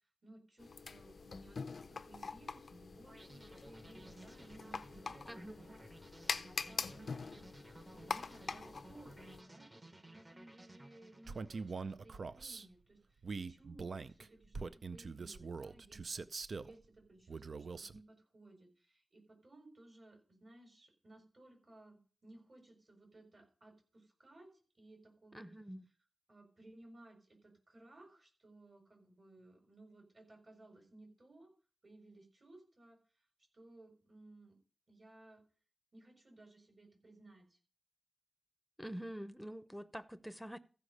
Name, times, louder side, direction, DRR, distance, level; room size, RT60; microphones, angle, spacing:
voice 1, 0.2-5.8 6.3-7.5 7.9-25.5 26.3-31.5 31.8-33.0 33.5-34.6 34.9-35.4 35.9-37.6, right 2 dB, 45° right, 4.6 m, -60 dB
sound 1, 0.6-9.4, left 4 dB, 70° left, 0.5 m, -44 dB
sound 2, 3.1-12.1, right 2 dB, 25° right, 1.1 m, -57 dB
voice 2, 5.3-5.7 25.3-25.9 38.8-40.6, equal, ahead, 0.8 m, -46 dB
Male speech man speaking, 11.3-12.6 13.2-16.7 17.3-18.0, right 4 dB, 70° right, 0.5 m, -43 dB
14.5 x 5.1 x 6.5 m
wide cardioid pair, 80°, 0 cm